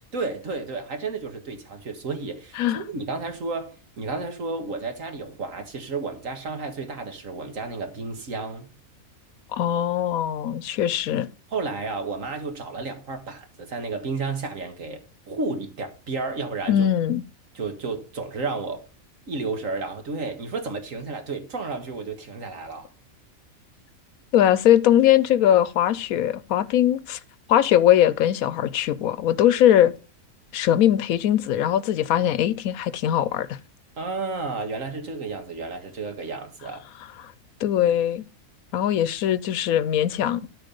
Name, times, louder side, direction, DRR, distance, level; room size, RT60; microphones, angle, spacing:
voice 1, 0.1-8.7 11.5-15.0 15.3-16.9 17.5-18.9 19.3-22.9 34.0-36.8, right 3 dB, 65° right, 2.0 m, -32 dB
voice 2, 9.5-11.3 16.7-17.2 24.3-27.2 27.5-29.9 30.5-33.6 37.6-38.2 38.7-40.4, left 11 dB, 85° left, 1.1 m, -20 dB
13.0 x 4.5 x 5.2 m
omnidirectional pair, 1.5 m